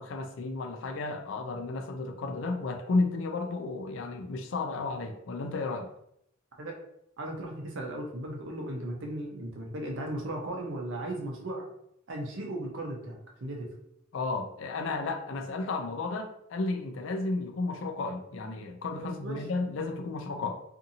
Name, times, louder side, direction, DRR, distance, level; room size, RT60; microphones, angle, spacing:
voice 1, 0.0-5.9 14.1-20.6, left 3 dB, 65° left, 5 dB, 0.4 m, -33 dB
voice 2, 7.2-11.7 12.1-13.7 19.0-19.4, right 1 dB, 65° right, 1 dB, 0.6 m, -36 dB
2.6 x 2.6 x 2.6 m, 0.75 s
head